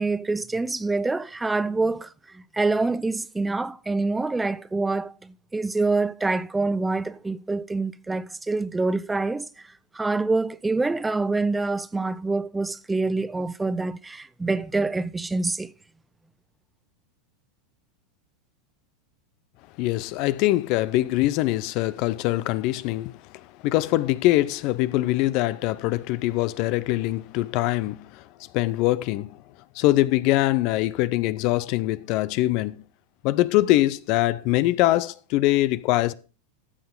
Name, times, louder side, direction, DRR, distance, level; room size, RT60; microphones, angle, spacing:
voice 1, 0.0-9.5 9.9-15.7, right 3 dB, 10° right, 0.5 m, -26 dB
voice 2, 19.8-23.1 23.6-28.2 28.5-29.4 29.8-32.8 33.2-36.1, left 17 dB, 55° left, 0.5 m, -23 dB
14.5 x 6.0 x 3.8 m
hypercardioid pair, 95°, 0 cm